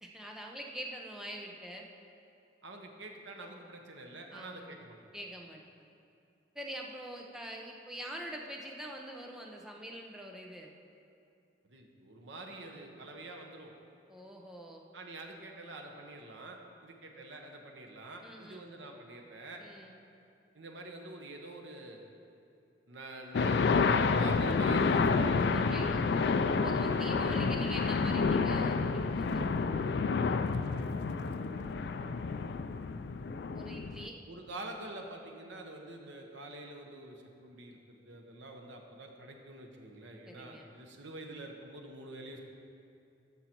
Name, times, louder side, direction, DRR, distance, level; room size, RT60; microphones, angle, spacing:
voice 1, 0.0-1.9 4.3-4.8 5.1-5.6 6.5-10.7 14.1-14.8 18.2-18.6 19.6-20.0 25.5-26.2 26.5-29.4 33.5-34.2 40.2-40.7, right 1 dB, 5° right, 0 dB, 0.7 m, -44 dB
voice 2, 2.6-5.1 11.6-13.7 14.9-19.6 20.5-22.0 22.9-25.8 31.1-31.9 34.3-42.4, right 2 dB, 80° right, 2 dB, 1.1 m, -47 dB
sound 1, 23.3-34.1, left 4 dB, 60° left, 0.3 m, -29 dB
14.0 x 5.6 x 4.5 m, 2.6 s
head